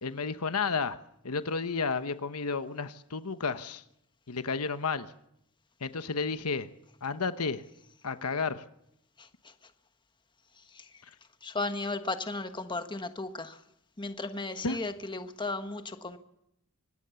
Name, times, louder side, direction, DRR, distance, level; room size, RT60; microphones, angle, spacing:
voice 1, 0.0-1.0 1.2-3.8 4.3-5.1 5.8-6.7 7.0-7.6 8.0-8.6 14.6-14.8, left 4 dB, 80° left, 11 dB, 1.1 m, -32 dB
voice 2, 9.2-9.5 10.7-10.9 11.4-13.6 14.0-16.2, left 3 dB, 20° left, 8 dB, 1.3 m, -35 dB
25.0 x 18.5 x 7.0 m, 0.78 s
head